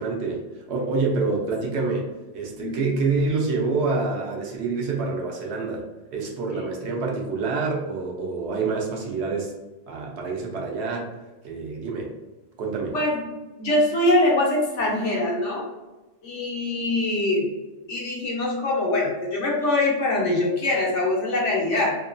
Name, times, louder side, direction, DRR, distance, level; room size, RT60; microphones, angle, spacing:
voice 1, 0.0-2.1 2.3-5.9 6.1-9.5 9.9-11.1 11.4-12.1 12.6-13.0, right 4 dB, 70° right, 0 dB, 0.8 m, -27 dB
voice 2, 13.6-15.7 16.2-17.5 17.9-22.0, left 2 dB, 80° left, -2 dB, 1.1 m, -23 dB
2.9 x 2.2 x 2.4 m, 1.1 s
omnidirectional pair, 1.2 m